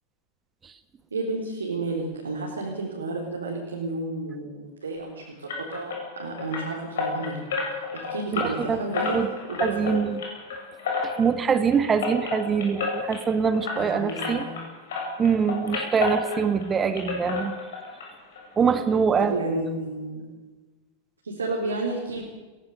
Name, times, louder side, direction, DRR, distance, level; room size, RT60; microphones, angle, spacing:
voice 1, 1.1-7.4 7.9-9.2 9.5-9.9 13.7-14.6 19.2-20.2 21.2-22.2, right 2 dB, 75° right, -2 dB, 4.2 m, -31 dB
sound 1, 5.5-14.6 14.9-16.7 16.9-18.1 18.3-18.4 18.9-19.0 19.3-19.4, left 4 dB, 60° left, 7.7 m, -31 dB
voice 2, 8.3-8.8 9.1-9.3 9.6-10.2 11.0-14.5 15.2-17.5 18.6-19.4, right 6 dB, 20° right, 11 dB, 1.7 m, -24 dB
21.5 x 18.5 x 7.0 m, 1.2 s
figure-of-eight pair, 90°, 0 cm